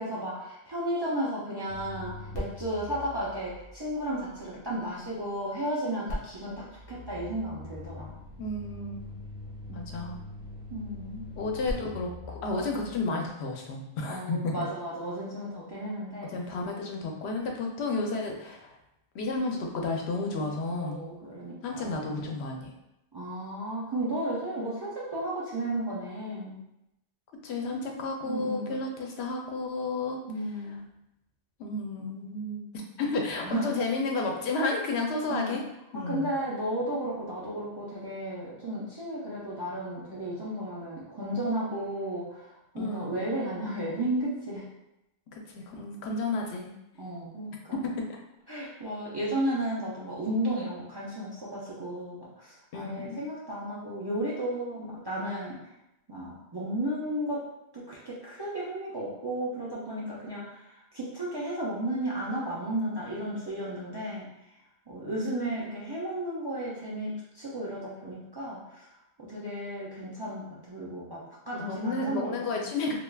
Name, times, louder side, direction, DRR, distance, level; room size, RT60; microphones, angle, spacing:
voice 1, 0.0-8.1 9.7-9.9 10.7-11.2 14.1-16.3 20.7-21.9 23.1-26.6 28.2-28.8 30.3-30.8 33.4-33.8 35.3-35.6 35.9-44.6 47.0-47.8 48.5-55.6 56.1-57.4 57.7-64.3 64.9-68.9 69.2-72.7, right 1 dB, 40° right, -7 dB, 0.3 m, -34 dB
sound 1, 1.7-4.9 6.1-13.0, left 1 dB, 50° left, 0.7 m, -42 dB
voice 2, 8.4-9.0 9.7-10.2 11.4-14.5 16.3-18.8 19.1-21.0 21.6-22.7 27.4-30.2 31.6-32.7 33.0-35.6 35.9-36.3 42.8-43.2 45.3-46.7 47.7-48.1 52.7-53.2 71.5-73.0, left 3 dB, 80° left, 1 dB, 0.8 m, -32 dB
3.2 x 2.4 x 2.2 m, 0.88 s
omnidirectional pair, 1.1 m